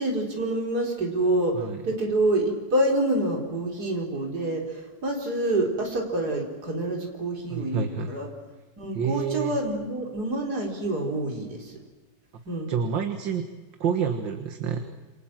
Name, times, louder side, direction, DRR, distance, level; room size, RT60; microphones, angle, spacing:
voice 1, 0.0-8.3 8.8-11.8 12.5-12.7, right 1 dB, 55° right, 1 dB, 4.7 m, -27 dB
voice 2, 7.5-8.1 8.9-9.6 12.7-13.5 13.8-14.8, right 6 dB, 75° right, 7 dB, 2.3 m, -28 dB
28.5 x 27.0 x 7.6 m, 1.3 s
omnidirectional pair, 2.0 m